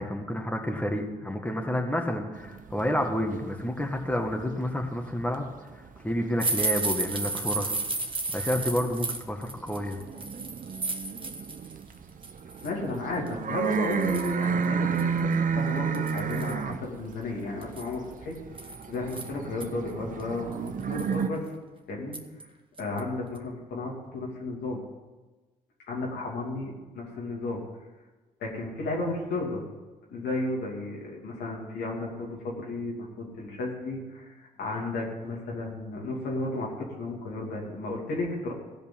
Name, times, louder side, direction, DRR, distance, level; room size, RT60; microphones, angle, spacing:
voice 1, 0.0-7.7 8.3-10.0, left 1 dB, 10° left, 2 dB, 1.9 m, -30 dB
sound 1, 2.4-5.3 5.6-8.2 8.6-21.3, right 6 dB, 55° right, 0.9 m, -32 dB
sound 2, 6.4-11.7 12.1-12.7 13.3-13.4 13.7-14.5 15.0-15.1 15.3-15.4 15.9-16.6 17.6-19.6 20.2-20.3 20.7-21.2 22.1-22.4 22.8-23.0 23.4-23.5, right 3 dB, 30° right, 1.5 m, -33 dB
voice 2, 12.6-14.9 15.2-18.3 18.6-21.4 21.9-22.2 22.8-24.8 25.9-27.6 28.4-29.6 30.1-38.5, left 2 dB, 80° left, -2 dB, 2.9 m, -33 dB
15.5 x 5.3 x 9.0 m, 1.2 s
supercardioid pair, 55°, 17 cm